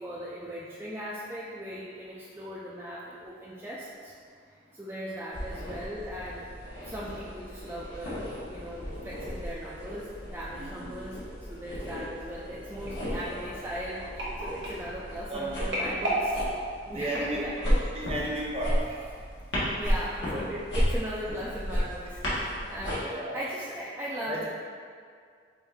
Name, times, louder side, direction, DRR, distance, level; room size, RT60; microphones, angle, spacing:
voice 1, 0.0-4.1 4.7-6.5 6.8-16.4 16.9-17.5 19.8-24.5, equal, 10° right, -8 dB, 0.3 m, -38 dB
sound 1, 5.3-22.9, equal, 80° left, 1.4 m, -34 dB
voice 2, 10.6-10.9 15.3-15.7 16.9-17.4 17.9-18.8 23.0-23.4 24.3-24.5, right 1 dB, 30° right, -4 dB, 0.7 m, -33 dB
sound 2, 12.9-17.9 18.5-18.7 19.0-19.1, right 1 dB, 70° right, 1.3 m, -35 dB
5.3 x 2.6 x 3.5 m, 2.1 s
head